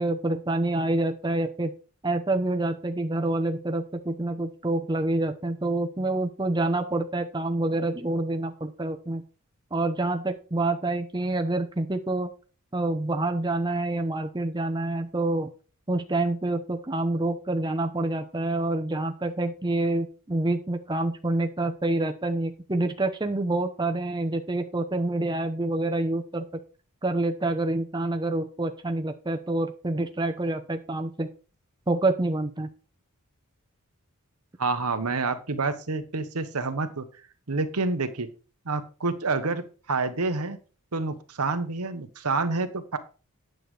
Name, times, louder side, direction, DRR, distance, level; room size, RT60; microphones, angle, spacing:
voice 1, 0.0-1.7 2.0-9.2 9.7-12.3 12.7-15.5 15.9-26.5 27.0-31.3 31.9-32.7, right 2 dB, 20° right, 6 dB, 0.7 m, -27 dB
voice 2, 34.6-37.1 37.5-38.3 38.6-40.6 40.9-43.0, right 3 dB, 85° right, 9 dB, 1.1 m, -28 dB
9.4 x 7.7 x 3.3 m, 0.36 s
head